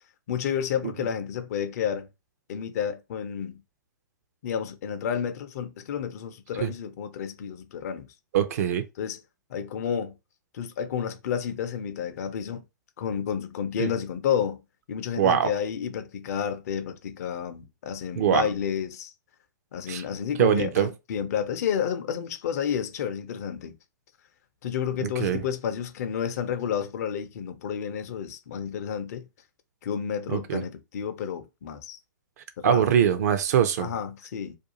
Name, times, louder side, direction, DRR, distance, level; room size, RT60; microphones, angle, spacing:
voice 1, 0.3-2.1 2.5-3.6 4.4-8.1 9.0-9.2 9.5-10.1 10.5-12.6 13.0-14.6 14.9-19.1 19.7-23.7 24.6-29.3 29.8-32.0 32.6-32.9 33.8-34.6, left 8 dB, 50° left, 0.5 m, -30 dB
voice 2, 8.3-8.8 13.8-13.9 15.2-15.5 18.2-18.5 19.9-20.0 20.4-20.9 25.0-25.4 30.3-30.6 32.6-33.9, right 9 dB, 50° right, 0.5 m, -23 dB
2.5 x 2.3 x 2.8 m
figure-of-eight pair, 115°, 11 cm